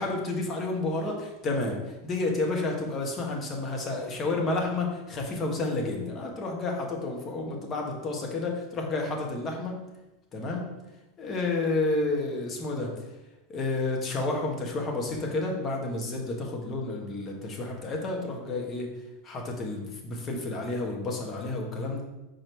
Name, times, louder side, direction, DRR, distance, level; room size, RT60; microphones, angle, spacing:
voice 1, 0.0-9.8 10.3-10.7 11.2-12.9 13.5-18.9 19.2-22.0, left 2 dB, 35° left, 1 dB, 1.4 m, -30 dB
4.8 x 4.5 x 4.5 m, 1.0 s
hypercardioid pair, 95°, 0 cm